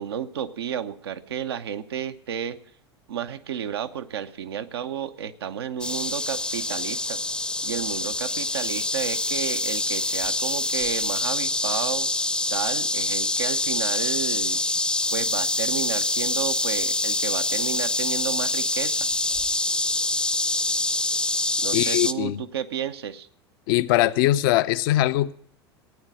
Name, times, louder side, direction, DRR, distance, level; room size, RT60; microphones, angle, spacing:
voice 1, 0.0-2.6 3.1-7.2 7.6-12.1 12.5-14.6 15.1-19.1 21.6-23.3, right 9 dB, 70° right, 0.9 m, -32 dB
sound 1, 5.8-22.1, left 2 dB, 5° left, 0.7 m, -25 dB
voice 2, 21.7-22.4 23.7-25.3, left 15 dB, 55° left, 0.7 m, -21 dB
16.5 x 9.6 x 6.2 m
figure-of-eight pair, 80°, 14 cm